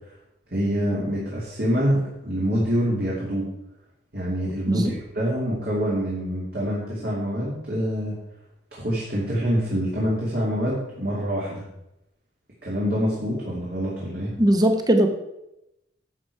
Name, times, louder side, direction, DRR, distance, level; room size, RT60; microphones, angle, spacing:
voice 1, 0.5-3.5 4.1-8.2 8.7-11.6 12.6-14.3, equal, 55° right, -5 dB, 2.7 m, -26 dB
voice 2, 14.4-15.1, right 1 dB, 20° right, 6 dB, 1.1 m, -19 dB
11.0 x 7.1 x 4.7 m, 0.86 s
head